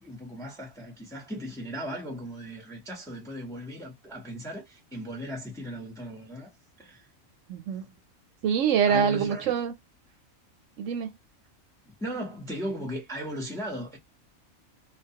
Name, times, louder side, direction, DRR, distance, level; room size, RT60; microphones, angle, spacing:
voice 1, 0.0-6.5 6.8-7.1 8.9-9.5 11.9-14.0, equal, 5° left, 0.6 m, -37 dB
voice 2, 7.5-7.8 8.4-9.7 10.8-11.1, right 7 dB, 70° right, 0.9 m, -25 dB
2.3 x 2.3 x 2.7 m
omnidirectional pair, 1.4 m